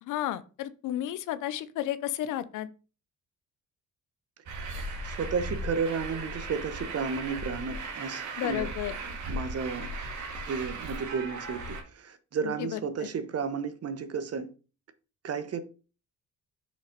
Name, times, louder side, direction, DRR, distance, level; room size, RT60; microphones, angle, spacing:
voice 1, 0.1-2.7 8.4-8.9 12.4-12.8, left 12 dB, 85° left, 0.7 m, -32 dB
Truck, 4.5-11.8, right 2 dB, 75° right, 1.9 m, -37 dB
voice 2, 5.0-9.0 9.3-9.9 10.3-14.5 15.2-15.6, right 5 dB, 55° right, 1.1 m, -33 dB
6.3 x 4.0 x 5.1 m
cardioid pair, 90°, 30 cm